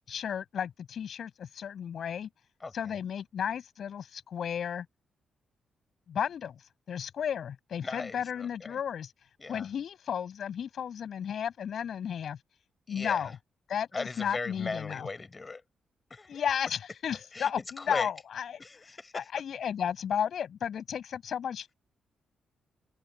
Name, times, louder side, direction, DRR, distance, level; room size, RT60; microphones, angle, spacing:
voice 1, 0.1-2.3 2.7-4.9 6.1-6.5 6.9-9.1 9.5-12.4 12.9-13.4 13.7-15.1 16.3-18.6 19.1-21.7, left 8 dB, 65° left, 7.8 m, -33 dB
voice 2, 7.8-8.8 9.4-9.7 12.9-13.3 13.9-15.6 16.1-16.4 17.3-18.1 18.6-19.3, left 3 dB, 35° left, 5.9 m, -38 dB
open air
hypercardioid pair, 45°, 0 cm